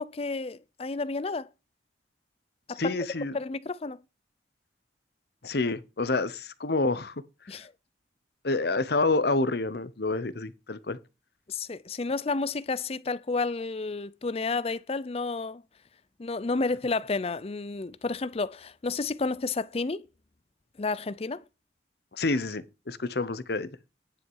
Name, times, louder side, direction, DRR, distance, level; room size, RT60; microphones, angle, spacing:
voice 1, 0.0-1.5 2.7-2.9 3.3-4.0 7.5-7.7 11.5-15.6 16.2-20.0 20.8-21.4, left 3 dB, 35° left, 0.5 m, -31 dB
voice 2, 2.8-3.4 5.4-7.1 8.4-11.0 22.1-23.7, left 3 dB, 60° left, 0.9 m, -28 dB
10.0 x 6.3 x 4.7 m
head